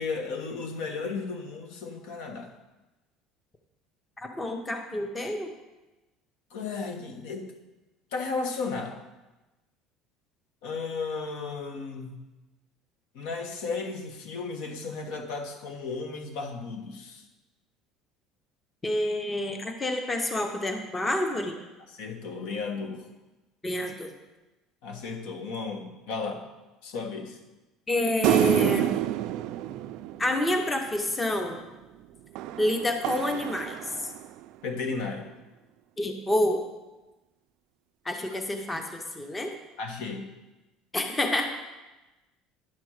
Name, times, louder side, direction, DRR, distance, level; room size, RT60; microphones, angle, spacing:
voice 1, 0.0-2.5 6.5-7.5 8.1-9.0 10.6-12.2 13.1-17.2 21.9-23.1 24.8-26.4 26.8-27.4 34.6-35.3 38.3-38.4 39.8-40.2, left 4 dB, 80° left, 4 dB, 1.4 m, -34 dB
voice 2, 4.2-5.5 18.8-21.5 23.6-24.1 27.9-29.0 30.2-31.6 32.6-33.8 34.0-34.1 36.0-36.7 38.0-39.5 40.9-41.5, left 1 dB, 15° left, 5 dB, 0.6 m, -28 dB
sound 1, 28.2-30.9 32.4-34.4, right 14 dB, 55° right, 0.3 m, -28 dB
10.5 x 4.4 x 6.4 m, 1.1 s
cardioid pair, 170°, 0 cm